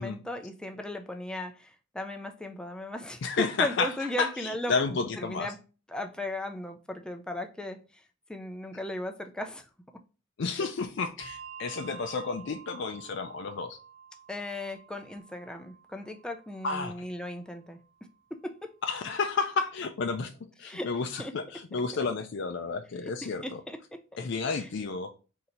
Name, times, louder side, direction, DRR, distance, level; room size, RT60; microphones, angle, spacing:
voice 1, 0.0-3.2 3.6-5.6 5.9-8.0 8.3-9.7 14.3-17.8 18.4-18.7 20.6-20.9 21.2-21.3 23.2-24.0 24.6-24.7, left 1 dB, 5° left, 0.4 m, -37 dB
voice 2, 3.2-3.9 4.2-5.5 10.4-13.8 16.6-17.0 18.8-23.6 24.2-25.1, left 4 dB, 65° left, 0.4 m, -31 dB
Bell, 11.2-18.1, right 7 dB, 65° right, 0.8 m, -50 dB
3.9 x 2.7 x 4.2 m
head